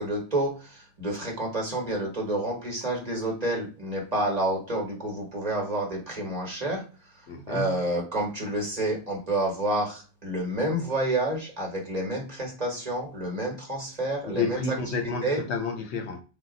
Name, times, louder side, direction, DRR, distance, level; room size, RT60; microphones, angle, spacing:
voice 1, 0.0-6.8 7.5-14.6 15.2-15.4, right 1 dB, 35° right, 1.2 m, -29 dB
voice 2, 7.3-7.8 14.2-16.2, left 4 dB, 70° left, 0.8 m, -30 dB
4.0 x 2.3 x 3.8 m
omnidirectional pair, 1.2 m